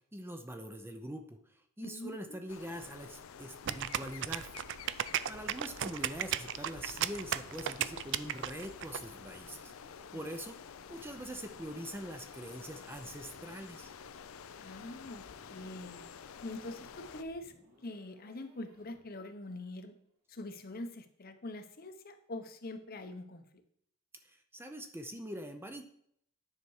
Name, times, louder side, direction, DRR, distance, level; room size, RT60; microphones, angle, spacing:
voice 1, 0.1-1.4 1.8-4.5 5.3-9.7 10.1-10.6 10.9-13.9 24.2-25.8, equal, 10° right, 6 dB, 0.6 m, -43 dB
voice 2, 1.8-2.4 10.1-10.3 14.6-15.2 15.5-16.0 16.4-17.5 17.8-19.9 20.3-23.4, left 2 dB, 45° left, 8 dB, 0.8 m, -44 dB
sound 1, 2.5-17.2, left 7 dB, 75° left, 0.5 m, -50 dB
sound 2, 3.7-9.0, right 11 dB, 60° right, 0.4 m, -35 dB
sound 3, 5.3-19.3, equal, 75° right, 3.0 m, -64 dB
9.7 x 5.8 x 4.8 m, 0.70 s
head